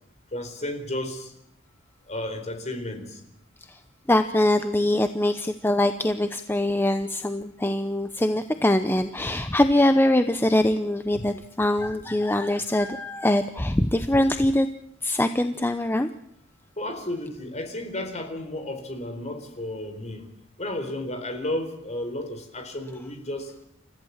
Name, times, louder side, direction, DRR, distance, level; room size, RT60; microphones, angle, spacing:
voice 1, 0.3-1.3 2.1-3.2 11.1-11.3 16.8-20.2 20.6-23.5, left 1 dB, 35° left, 6 dB, 4.2 m, -33 dB
voice 2, 4.1-14.7 15.0-16.1, left 1 dB, 10° left, 9 dB, 0.8 m, -23 dB
29.5 x 15.0 x 7.3 m, 0.78 s
head